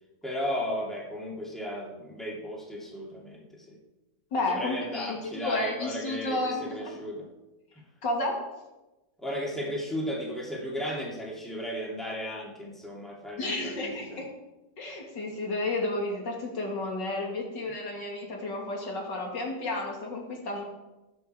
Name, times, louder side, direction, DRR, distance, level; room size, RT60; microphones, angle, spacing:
voice 1, 0.2-3.8 4.4-7.3 9.2-14.2, equal, ahead, -3 dB, 2.8 m, -35 dB
voice 2, 4.3-6.9 8.0-8.4 13.4-14.3 14.8-20.6, left 2 dB, 90° left, 0 dB, 3.0 m, -32 dB
20.0 x 7.1 x 4.6 m, 1.1 s
omnidirectional pair, 1.8 m